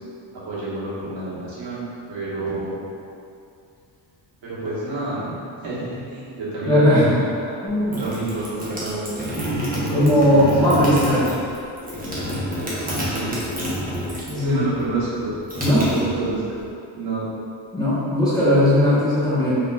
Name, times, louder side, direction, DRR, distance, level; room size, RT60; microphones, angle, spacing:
voice 1, 0.3-2.8 4.4-7.3 7.9-9.3 9.7-10.9 12.9-13.4 14.1-15.4 15.8-16.6 16.9-17.3, right 2 dB, 70° right, -9 dB, 1.5 m, -29 dB
voice 2, 6.7-7.2 7.6-8.0 9.9-11.3 14.3-14.7 15.6-15.9 17.7-19.6, equal, 10° left, -12 dB, 1.1 m, -18 dB
sound 1, 7.7-14.4 14.7-16.6, equal, 20° right, 0.8 m, -28 dB
5.1 x 2.9 x 2.4 m, 2.5 s
cardioid pair, 135°, 48 cm